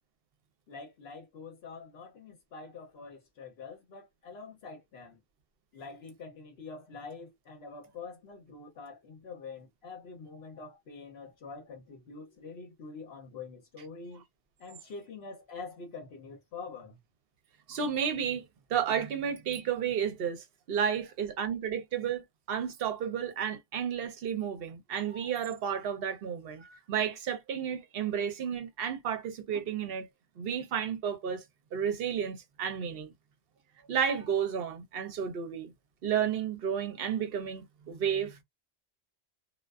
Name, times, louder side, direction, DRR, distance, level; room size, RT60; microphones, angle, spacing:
voice 1, 0.7-5.2 5.7-14.2 14.6-17.0, left 4 dB, 65° left, 0.9 m, -45 dB
voice 2, 17.7-30.1 30.4-31.4 31.7-33.1 33.9-35.7 36.0-38.4, right 8 dB, 60° right, 0.8 m, -32 dB
2.4 x 2.2 x 2.3 m
omnidirectional pair, 1.2 m